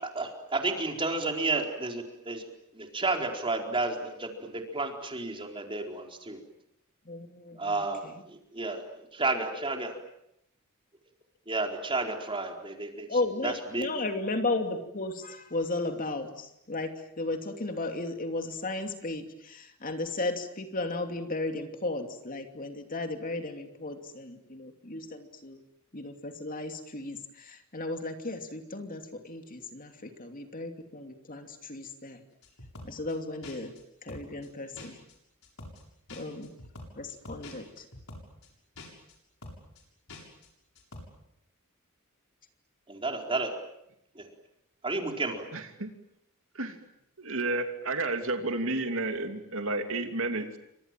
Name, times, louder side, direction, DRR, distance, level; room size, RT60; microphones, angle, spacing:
voice 1, 0.0-2.5 2.7-6.4 7.5-8.1 8.6-8.8 9.2-10.0 11.5-13.1 13.4-13.9 42.9-43.5 44.1-44.3 44.8-45.5, right 3 dB, 25° right, 3 dB, 4.4 m, -31 dB
voice 2, 7.1-7.8 13.1-25.6 25.9-32.2 32.8-33.7 34.0-35.0 36.1-36.5 36.9-37.8, left 2 dB, 40° left, 5 dB, 2.8 m, -35 dB
sound 1, 32.4-33.1 33.4-33.8 34.1-34.5 34.8-35.1 35.4-35.8 36.1-38.5 38.8-39.1 39.4-39.8 40.1-40.5 40.8-41.0, left 2 dB, 70° left, 7.7 m, -46 dB
voice 3, 45.5-45.9 46.5-46.8 47.2-50.6, right 2 dB, 65° right, 6 dB, 2.9 m, -31 dB
29.0 x 25.5 x 7.7 m, 0.80 s
head